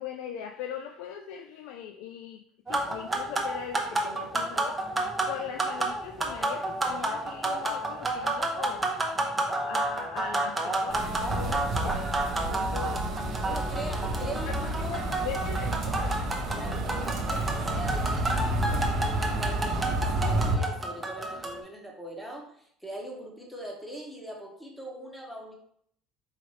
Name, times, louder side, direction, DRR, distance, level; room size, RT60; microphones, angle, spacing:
voice 1, 0.0-2.4 2.7-4.8 5.2-8.8 9.6-12.1 12.4-13.1 13.5-13.6 14.0-16.2, left 8 dB, 80° left, 4 dB, 0.3 m, -40 dB
sound 1, 2.7-21.6, right 2 dB, 15° right, 0.8 m, -31 dB
sound 2, 10.9-20.6, right 2 dB, 50° right, 0.9 m, -30 dB
voice 2, 11.4-11.7 13.4-15.0 16.5-25.5, right 1 dB, 5° left, 0 dB, 1.2 m, -41 dB
4.4 x 3.7 x 3.1 m, 0.66 s
supercardioid pair, 105°, 0 cm